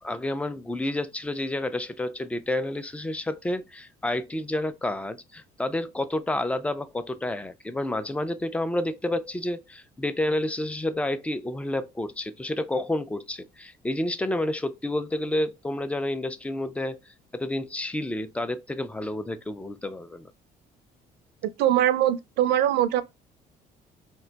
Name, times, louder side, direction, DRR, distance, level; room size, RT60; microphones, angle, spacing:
voice 1, 0.0-20.3, left 1 dB, 10° left, 0.3 m, -30 dB
voice 2, 21.4-23.0, right 12 dB, 80° right, 0.4 m, -22 dB
2.4 x 2.2 x 3.8 m
cardioid pair, 110°, 17 cm